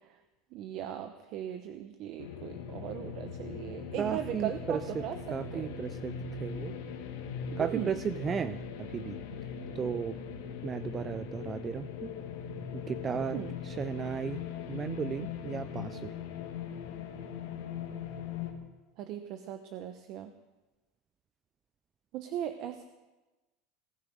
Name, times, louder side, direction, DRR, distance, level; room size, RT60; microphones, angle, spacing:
voice 1, 0.5-5.2 5.5-5.7 7.6-8.0 13.3-13.5 19.0-20.3 22.1-22.8, right 11 dB, 50° right, 9 dB, 0.9 m, -38 dB
sound 1, 2.2-18.5, left 6 dB, 80° left, 2.3 m, -40 dB
voice 2, 4.0-6.7 7.6-9.2 9.7-10.2 10.6-12.1 12.7-14.4 14.7-16.1, right 7 dB, 25° right, 13 dB, 0.4 m, -35 dB
19.5 x 13.0 x 5.4 m, 1.1 s
supercardioid pair, 145°, 0 cm